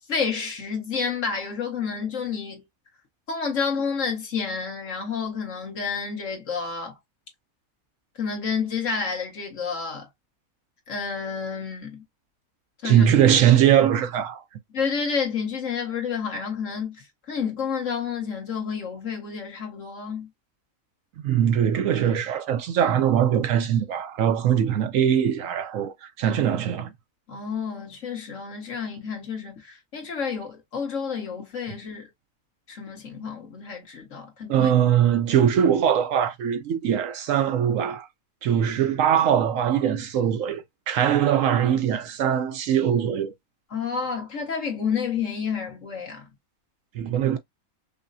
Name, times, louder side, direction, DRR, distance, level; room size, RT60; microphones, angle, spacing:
voice 1, 0.1-2.6 3.3-7.0 8.2-10.1 10.9-12.0 12.8-13.1 14.7-20.3 27.3-32.1 32.7-34.7 43.7-46.3, left 6 dB, 60° left, 1.7 m, -30 dB
voice 2, 12.8-14.4 21.2-26.9 34.5-38.1 38.4-43.3 46.9-47.4, right 9 dB, 70° right, 0.9 m, -21 dB
5.3 x 2.1 x 2.6 m
omnidirectional pair, 1.5 m